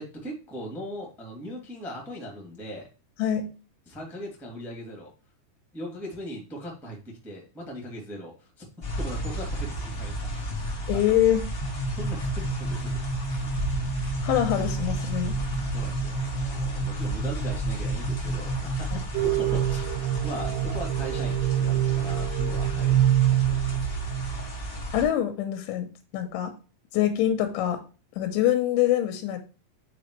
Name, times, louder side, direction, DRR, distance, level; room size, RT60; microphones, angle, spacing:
voice 1, 0.0-2.9 3.8-5.1 5.7-7.0 7.2-8.6 9.0-10.6 11.0-11.1 12.0-13.0 14.8-14.9 15.7-19.9 20.2-23.7, equal, ahead, -1 dB, 1.5 m, -39 dB
voice 2, 3.2-3.5 10.9-11.5 14.2-15.4 18.9-19.0 24.9-25.9 26.1-26.5 26.9-27.8 28.2-29.4, left 11 dB, 85° left, 7 dB, 3.3 m, -24 dB
sound 1, 8.8-25.0, right 1 dB, 50° left, 0.9 m, -33 dB
sound 2, 11.6-19.2, right 2 dB, 65° right, 4.3 m, -31 dB
sound 3, 19.1-24.5, right 12 dB, 80° right, 2.5 m, -25 dB
9.1 x 4.7 x 3.3 m, 0.33 s
omnidirectional pair, 5.3 m